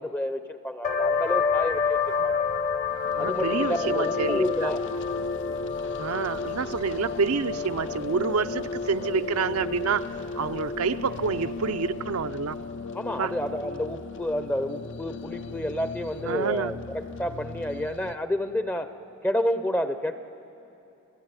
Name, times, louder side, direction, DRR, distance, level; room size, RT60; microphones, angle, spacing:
voice 1, 0.0-2.5 3.2-4.8 12.9-18.9 19.2-20.1, left 1 dB, 10° left, 10 dB, 0.6 m, -29 dB
sound 1, 0.8-12.1, left 6 dB, 35° left, 1.0 m, -30 dB
sound 2, 2.9-18.2, left 3 dB, 60° left, 0.7 m, -37 dB
voice 2, 3.2-4.7 6.0-10.1 10.4-12.6 13.2-13.3 16.3-16.7, right 5 dB, 75° right, 11 dB, 0.7 m, -28 dB
28.5 x 16.0 x 9.6 m, 2.8 s
head